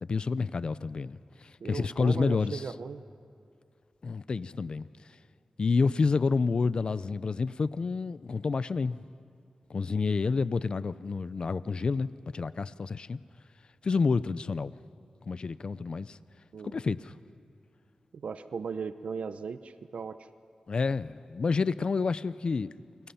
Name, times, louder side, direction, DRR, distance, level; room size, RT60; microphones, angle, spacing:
voice 1, 0.0-2.6 4.0-4.9 5.6-9.0 9.7-13.2 13.8-14.7 15.3-16.2 16.6-17.1 20.7-22.7, left 4 dB, 50° left, 0.5 m, -29 dB
voice 2, 1.6-3.0 16.5-17.0 18.1-20.2, right 5 dB, 85° right, 0.8 m, -37 dB
29.0 x 24.0 x 5.8 m
wide cardioid pair, 140°, 2 cm